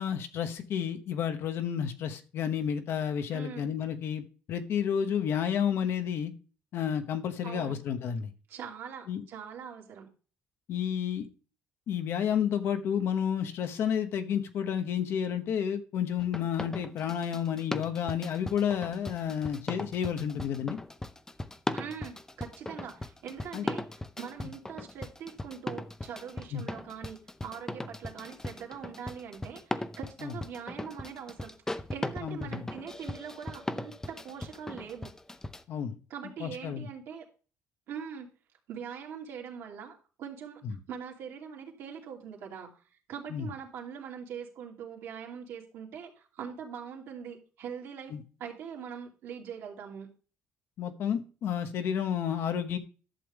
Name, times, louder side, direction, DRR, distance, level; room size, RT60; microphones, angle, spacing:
voice 1, 0.0-6.3 6.7-8.3 9.1-9.2 10.7-11.3 11.9-20.8 23.5-23.7 26.5-26.6 30.2-30.3 32.2-32.5 35.7-36.0 36.4-36.9 43.3-43.5 48.1-48.2 50.8-52.8, left 8 dB, 65° left, 1.0 m, -31 dB
voice 2, 3.3-3.7 7.4-7.8 8.5-10.1 21.7-35.1 36.1-37.2 37.9-38.3 38.7-40.6 40.9-42.7 43.1-48.1 48.4-50.1, right 7 dB, 70° right, 2.6 m, -42 dB
sound 1, 16.2-35.6, left 2 dB, 10° left, 0.6 m, -38 dB
11.5 x 6.9 x 3.5 m
cardioid pair, 105°, 5 cm